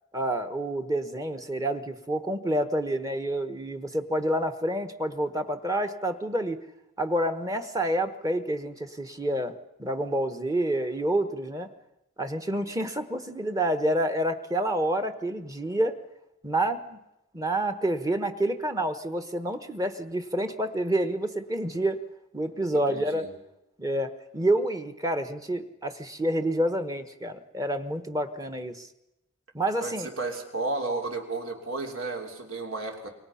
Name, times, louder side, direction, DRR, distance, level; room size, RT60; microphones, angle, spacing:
voice 1, 0.1-6.6 7.0-9.5 9.8-11.7 12.2-16.0 16.4-17.0 17.3-22.0 22.3-23.2 23.8-28.9 29.5-30.1, right 1 dB, 15° right, 8 dB, 1.2 m, -28 dB
voice 2, 22.9-23.3 29.8-33.1, right 3 dB, 70° right, 3 dB, 3.4 m, -33 dB
27.0 x 23.5 x 5.8 m, 0.88 s
head